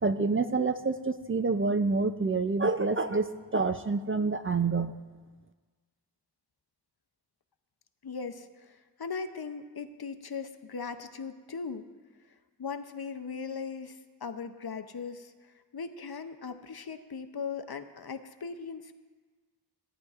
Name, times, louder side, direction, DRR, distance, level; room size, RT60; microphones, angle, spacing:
voice 1, 0.0-4.9, right 4 dB, 30° right, 9 dB, 0.4 m, -27 dB
voice 2, 8.0-11.9 12.6-18.9, left 5 dB, 60° left, 9 dB, 0.6 m, -39 dB
17.0 x 10.0 x 2.4 m, 1.4 s
wide cardioid pair, 50°, 42 cm